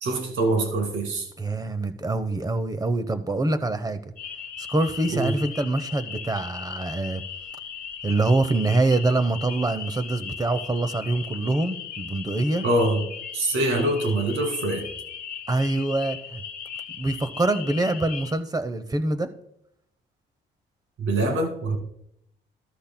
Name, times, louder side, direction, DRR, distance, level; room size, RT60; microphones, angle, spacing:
voice 1, 0.0-1.3 5.1-5.3 12.6-13.1 13.3-14.9 21.0-21.8, right 2 dB, 80° right, 3 dB, 2.3 m, -24 dB
voice 2, 1.4-4.0 4.6-7.2 8.0-12.6 15.5-16.4 17.0-19.3, right 2 dB, 20° right, 11 dB, 0.8 m, -25 dB
sound 1, 4.2-18.3, left 7 dB, 45° left, 1.3 m, -38 dB
13.5 x 12.0 x 2.2 m, 0.77 s
cardioid pair, 90°, 20 cm